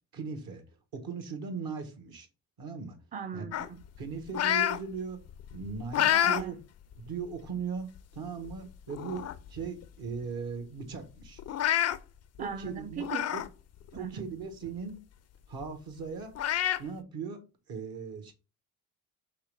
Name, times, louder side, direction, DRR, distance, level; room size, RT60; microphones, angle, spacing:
voice 1, 0.1-0.6 0.9-2.3 2.6-3.0 3.3-3.5 4.0-5.2 5.5-6.6 7.0-7.9 8.1-11.4 12.4-13.0 13.3-13.4 13.9-15.0 15.5-16.3 16.8-17.4 17.7-18.3, right 5 dB, 55° right, 1.3 m, -38 dB
voice 2, 3.1-3.8 6.0-6.6 12.4-13.3 14.0-14.3, right 7 dB, 20° right, 0.5 m, -39 dB
sound 1, 3.5-4.8 5.3-6.4 6.9-7.1 8.0-8.1 8.5-8.6 8.9-9.5 9.8-9.9 10.2-10.3 11.4-12.0 13.0-13.5 13.9-14.0 15.6-15.7 16.4-16.8, left 11 dB, 40° left, 0.4 m, -28 dB
4.7 x 3.1 x 3.3 m
hypercardioid pair, 50°, 43 cm